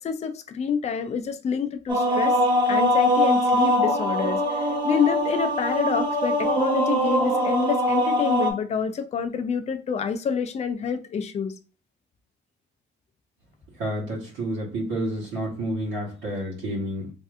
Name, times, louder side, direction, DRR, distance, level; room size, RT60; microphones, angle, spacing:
voice 1, 0.0-2.4 2.7-11.5, left 6 dB, 35° left, 9 dB, 0.4 m, -27 dB
sound 1, 1.9-8.5, equal, 20° right, 1.0 m, -22 dB
voice 2, 13.8-17.1, right 1 dB, 85° right, -4 dB, 1.1 m, -29 dB
3.2 x 2.6 x 2.4 m, 0.37 s
cardioid pair, 90°, 20 cm